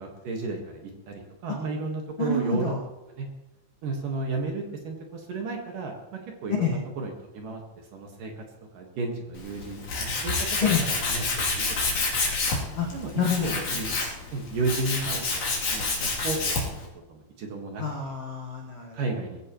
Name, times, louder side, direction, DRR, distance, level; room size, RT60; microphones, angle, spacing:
voice 1, 0.0-2.7 3.1-3.3 3.8-7.6 7.9-8.3 8.7-10.5 10.8-12.0 12.9-13.9 14.3-16.5 17.1-17.8 18.9-19.4, right 3 dB, 55° right, 1 dB, 2.7 m, -33 dB
voice 2, 2.2-2.8 6.6-6.8 10.6-10.8 12.7-12.9 13.1-13.9 17.8-19.0, left 5 dB, 70° left, -1 dB, 1.4 m, -27 dB
Tools, 9.4-16.8, left 3 dB, 45° left, 4.0 m, -28 dB
20.5 x 16.0 x 3.1 m, 1.0 s
omnidirectional pair, 5.3 m